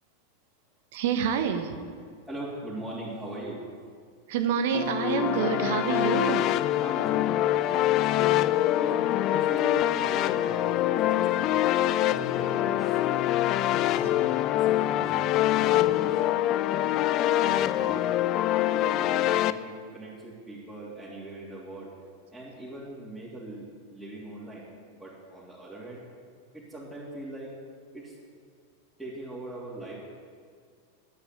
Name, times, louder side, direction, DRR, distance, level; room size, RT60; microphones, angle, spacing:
voice 1, 0.9-1.8 4.3-6.6 14.0-14.1, right 7 dB, 50° right, 8 dB, 1.3 m, -27 dB
voice 2, 2.2-3.6 6.8-8.3 8.6-13.3 13.8-15.3 15.6-16.2 17.1-18.1 18.7-21.9 22.3-24.6 24.9-26.0 26.5-27.5 27.9-28.1 29.0-30.0, right 1 dB, 5° right, -10 dB, 3.3 m, -40 dB
sound 1, 4.7-19.5, left 14 dB, 35° left, 0.4 m, -25 dB
11.5 x 9.6 x 9.4 m, 2.1 s
figure-of-eight pair, 90°, 0 cm